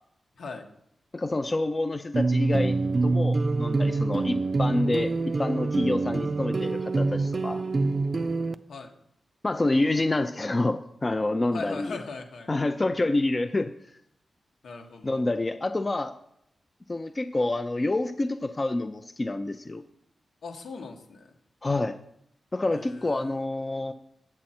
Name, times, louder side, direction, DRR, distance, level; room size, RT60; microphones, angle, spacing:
voice 1, 1.1-2.8 3.0-7.6 9.4-12.0 12.5-13.8 15.0-16.1 16.9-19.8 21.6-22.0 22.5-23.9, left 2 dB, 25° left, 8 dB, 0.4 m, -27 dB
sound 1, 2.1-8.5, right 3 dB, 40° right, 0.4 m, -26 dB
voice 2, 11.5-12.7 14.6-15.2 20.4-21.3 22.7-23.4, left 4 dB, 80° left, 2 dB, 1.4 m, -40 dB
8.3 x 7.6 x 4.3 m, 0.72 s
wide cardioid pair, 115°, 0 cm